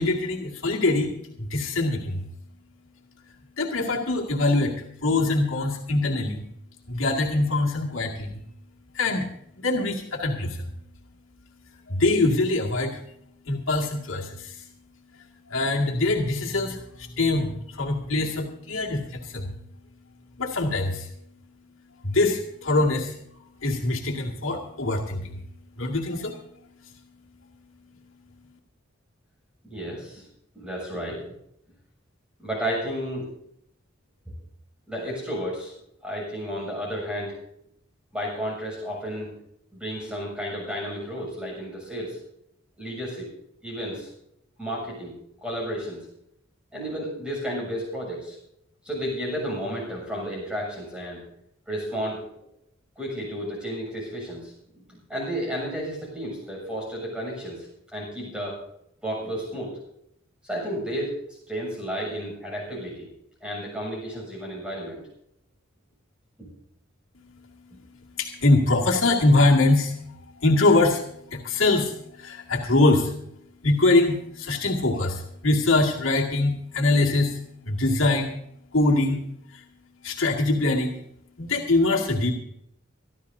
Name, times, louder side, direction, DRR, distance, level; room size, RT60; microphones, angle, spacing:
voice 1, 0.0-2.2 3.6-4.8 5.0-6.4 6.9-8.4 8.9-9.3 9.6-10.7 11.9-13.0 13.5-14.6 15.5-19.5 20.4-21.1 22.0-23.2 23.6-25.4 25.8-26.4 26.8-26.9 67.2-73.1 73.6-78.3 78.7-79.6 80.0-81.0 81.4-82.3, left 2 dB, 75° left, -2 dB, 2.2 m, -23 dB
voice 2, 29.7-30.2 30.5-31.2 32.4-33.2 34.9-35.7 36.0-37.4 38.1-39.3 39.7-42.2 42.8-43.3 43.6-44.1 44.6-46.1 46.7-48.4 48.8-51.2 51.7-52.2 53.0-57.7 57.9-58.6 59.0-59.8 60.4-63.1 63.4-65.0 67.7-67.8, equal, 5° right, -3 dB, 7.1 m, -32 dB
25.0 x 12.5 x 2.7 m, 0.75 s
head